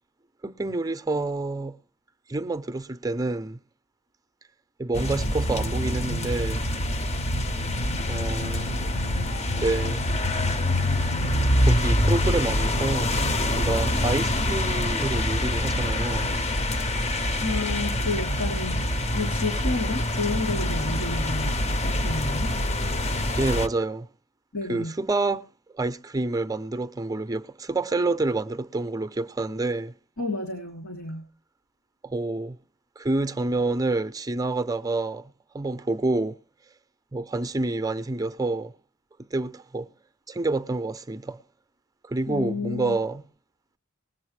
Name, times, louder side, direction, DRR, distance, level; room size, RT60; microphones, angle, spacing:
voice 1, 0.4-1.8 2.3-3.6 4.8-6.6 8.1-8.9 9.6-10.0 11.6-13.1 13.6-16.3 23.3-24.1 24.7-25.5 25.7-29.9 32.0-32.6 33.0-36.4 37.1-38.7 39.3-39.9 40.3-41.4 42.0-43.2, right 2 dB, 15° right, 0.5 m, -28 dB
sound 1, 4.9-23.7, left 1 dB, 30° left, 0.7 m, -25 dB
voice 2, 17.4-18.9 19.1-22.5 24.5-24.9 30.2-31.3 42.3-43.0, left 3 dB, 75° left, 3.1 m, -31 dB
20.5 x 8.0 x 3.2 m
head